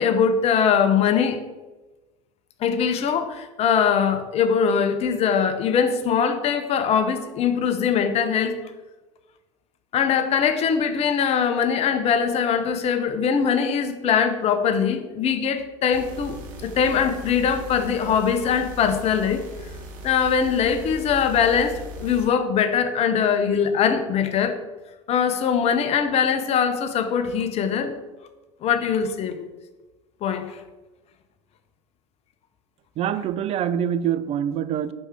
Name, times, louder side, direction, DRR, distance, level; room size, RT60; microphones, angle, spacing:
voice 1, 0.0-1.4 2.6-8.6 9.9-19.4 20.0-24.6 25.1-28.0 28.6-29.5 30.2-30.6, left 7 dB, 40° left, 0.8 m, -22 dB
sound 1, 15.9-22.3, right 1 dB, 60° right, 1.3 m, -39 dB
voice 2, 33.0-34.9, right 9 dB, 40° right, 0.5 m, -25 dB
5.4 x 4.7 x 5.9 m
hypercardioid pair, 90°, 17 cm